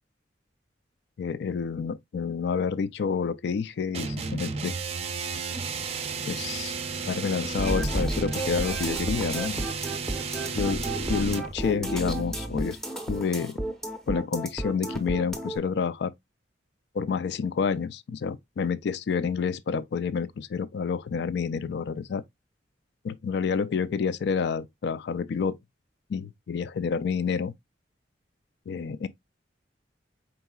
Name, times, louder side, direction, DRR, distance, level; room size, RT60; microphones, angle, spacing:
voice 1, 1.2-4.8 6.2-6.7 7.0-9.7 10.6-12.8 13.1-13.6 14.1-16.1 16.9-22.2 23.0-25.6 26.1-27.5 28.7-29.1, left 6 dB, 60° left, 0.3 m, -29 dB
sound 1, 3.9-11.5, right 5 dB, 35° right, 0.5 m, -33 dB
sound 2, 7.6-15.6, right 1 dB, ahead, 0.7 m, -32 dB
4.6 x 4.0 x 2.2 m
head